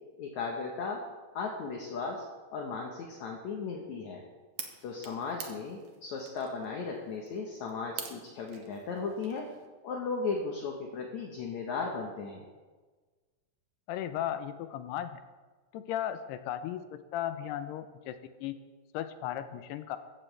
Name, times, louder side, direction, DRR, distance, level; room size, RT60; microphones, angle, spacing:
voice 1, 0.2-1.0 1.3-2.2 2.5-4.3 4.8-9.5 9.8-12.5, left 4 dB, 65° left, 0 dB, 1.9 m, -36 dB
sound 1, 4.5-9.7, right 7 dB, 60° right, 2.2 m, -47 dB
voice 2, 13.9-15.2 15.7-18.6 18.9-20.0, left 11 dB, 85° left, 10 dB, 2.8 m, -36 dB
15.5 x 14.5 x 3.3 m, 1.4 s
omnidirectional pair, 4.7 m